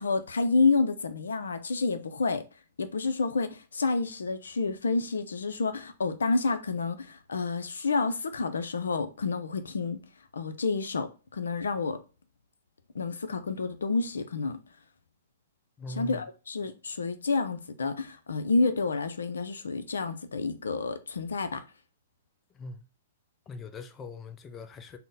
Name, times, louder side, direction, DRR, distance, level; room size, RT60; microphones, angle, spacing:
voice 1, 0.0-2.4 2.8-10.0 10.3-12.0 12.9-14.6 15.9-21.6, left 4 dB, 80° left, 0.4 m, -29 dB
voice 2, 15.8-16.2 22.5-22.8 23.5-25.0, left 2 dB, 20° left, 0.4 m, -41 dB
3.8 x 2.1 x 3.9 m
hypercardioid pair, 120°, 0 cm